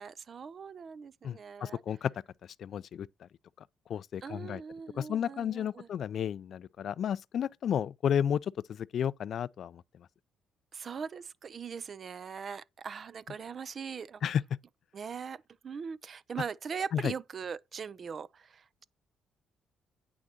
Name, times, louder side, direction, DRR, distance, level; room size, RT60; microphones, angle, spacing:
voice 1, 0.0-1.8 4.2-5.9 10.7-14.2 14.9-18.8, right 6 dB, 50° right, 0.5 m, -41 dB
voice 2, 1.2-2.1 2.6-3.3 3.9-4.6 4.9-9.8 14.2-14.4 16.9-17.1, left 9 dB, 65° left, 0.4 m, -32 dB
8.6 x 6.2 x 2.7 m
cardioid pair, 75°, 0 cm